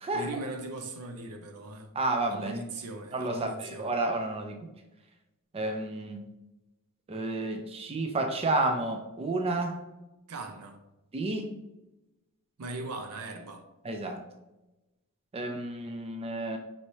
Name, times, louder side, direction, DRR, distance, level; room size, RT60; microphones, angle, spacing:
voice 1, 0.1-1.9 2.3-4.0 10.3-10.8 12.6-13.7, right 2 dB, 80° right, 0.6 m, -39 dB
voice 2, 2.0-2.6 3.1-4.6 5.5-6.2 7.1-9.8 11.1-11.5 13.8-14.2 15.3-16.6, right 2 dB, 25° right, 0.4 m, -31 dB
5.4 x 2.7 x 3.1 m
head